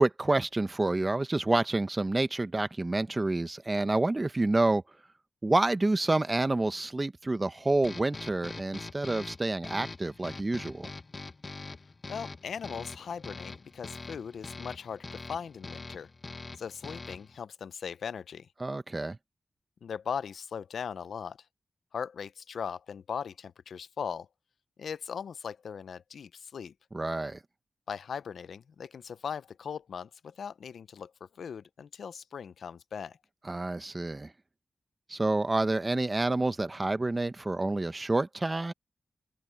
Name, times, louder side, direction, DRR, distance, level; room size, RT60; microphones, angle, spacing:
voice 1, 0.0-4.8 5.4-10.9 18.6-19.2 26.9-27.4 33.4-34.3 35.1-38.7, right 2 dB, 25° right, 1.0 m, -28 dB
sound 1, 7.8-17.4, left 3 dB, 35° left, 1.4 m, -43 dB
voice 2, 12.1-16.1 16.6-18.5 19.8-21.4 21.9-24.3 24.8-26.7 27.9-31.1 31.4-33.2, left 7 dB, 90° left, 0.5 m, -39 dB
open air
wide cardioid pair, 90°, 0 cm